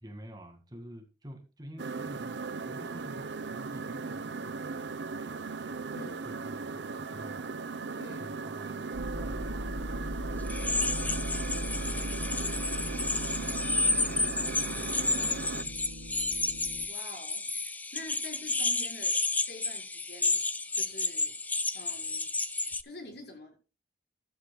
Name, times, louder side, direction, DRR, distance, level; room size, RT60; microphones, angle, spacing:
voice 1, 0.0-5.8 6.3-7.6 8.2-11.1 11.5-13.6 14.0-14.3 14.6-15.8, equal, 20° right, 5 dB, 2.1 m, -50 dB
sound 1, 1.8-15.6, right 4 dB, 80° right, 0.8 m, -38 dB
voice 2, 5.9-6.3 8.0-8.3 13.9-14.2 16.9-17.5 17.9-20.4 20.7-21.4 21.7-22.3 22.8-23.6, left 2 dB, 60° left, 1 dB, 4.9 m, -46 dB
sound 2, 8.9-16.9, equal, 55° right, 1.1 m, -38 dB
sound 3, 10.5-22.8, left 3 dB, 10° left, 0.5 m, -31 dB
14.5 x 12.0 x 2.3 m, 0.31 s
head